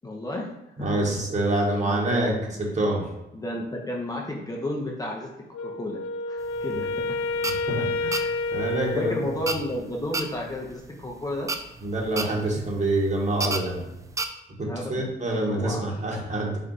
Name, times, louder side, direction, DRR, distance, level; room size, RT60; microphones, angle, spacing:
voice 1, 0.0-0.5 0.8-1.3 1.8-2.6 3.3-5.3 5.6-6.0 6.3-7.2 7.8-7.9 8.9-11.5 14.7-16.0, left 1 dB, 20° left, -1 dB, 0.6 m, -33 dB
voice 2, 0.8-2.3 2.8-3.1 7.5-9.1 11.8-13.8 14.6-16.6, right 1 dB, 35° right, -1 dB, 1.3 m, -26 dB
Wind instrument woodwind instrument, 5.5-9.9, left 3 dB, 85° left, 0.5 m, -30 dB
sound 1, 6.4-14.2, right 3 dB, 15° right, 0.3 m, -34 dB
4.3 x 2.4 x 3.9 m, 0.93 s
cardioid pair, 90°, 20 cm